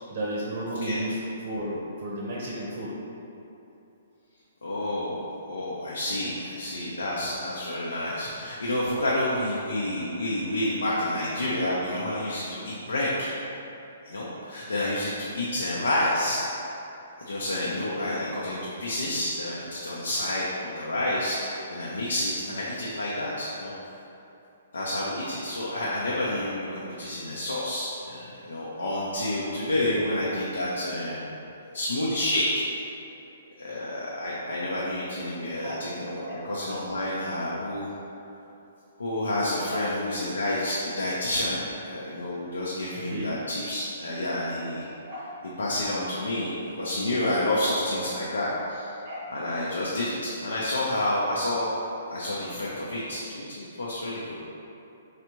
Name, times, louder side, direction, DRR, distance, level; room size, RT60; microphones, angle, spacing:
voice 1, 0.1-2.9 18.0-18.2 23.4-23.5 29.1-29.3 29.8-30.0 33.1-33.2 35.1-35.2 35.6-35.9 36.2-36.5 39.6-39.9 43.1-43.4 45.1-45.3 47.2-47.4 48.5-48.6 49.0-49.3, right 1 dB, 50° right, -5 dB, 0.7 m, -34 dB
voice 2, 4.6-13.3 14.1-16.5 17.3-23.7 24.7-31.3 31.7-32.5 33.6-37.9 39.0-44.8 45.6-48.9 49.3-51.7 52.1-54.3, left 1 dB, 85° left, -6 dB, 0.6 m, -29 dB
4.6 x 2.5 x 3.0 m, 2.9 s
hypercardioid pair, 130°, 0 cm